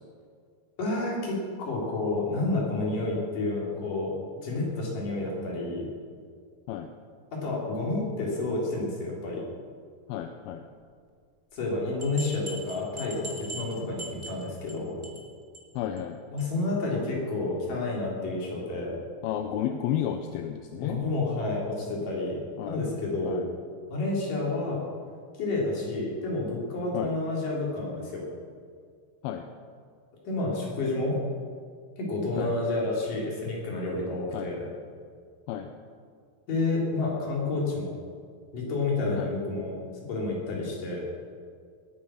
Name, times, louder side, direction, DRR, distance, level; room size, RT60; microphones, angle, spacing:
voice 1, 0.8-4.1 4.4-5.8 7.3-9.4 11.5-15.0 16.3-19.0 20.8-22.4 22.7-23.4 23.9-24.8 25.4-28.2 30.2-31.2 32.0-34.7 36.5-37.9 38.5-39.8 40.1-41.0, left 2 dB, 55° left, -3 dB, 4.9 m, -30 dB
voice 2, 10.1-10.6 15.8-16.2 19.2-21.0 22.6-22.8 23.2-23.4 26.9-27.1 29.2-29.4 32.4-32.5 34.3-34.5 35.5-35.7 39.2-39.3, left 10 dB, 80° left, 6 dB, 2.4 m, -32 dB
sound 1, 11.6-11.7 12.0-14.7 15.0-15.3 15.5-15.6 16.0-16.1 16.4-16.5, right 2 dB, 15° right, 0.8 m, -41 dB
19.5 x 9.4 x 6.4 m, 2.1 s
omnidirectional pair, 4.7 m